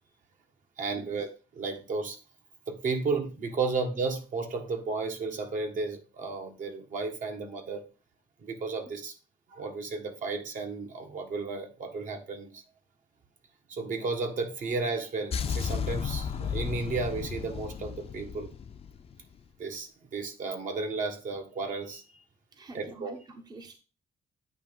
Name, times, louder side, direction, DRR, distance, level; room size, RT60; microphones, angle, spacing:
voice 1, 0.8-2.2 2.7-7.9 8.4-9.1 9.5-12.6 13.7-18.5 19.6-22.0 22.7-23.2, right 4 dB, 60° right, 1.5 m, -33 dB
sound 1, 15.3-19.4, left 7 dB, 40° left, 0.5 m, -34 dB
voice 2, 22.5-23.8, right 2 dB, 25° right, 0.7 m, -46 dB
8.8 x 3.0 x 5.2 m
cardioid pair, 115°, 15 cm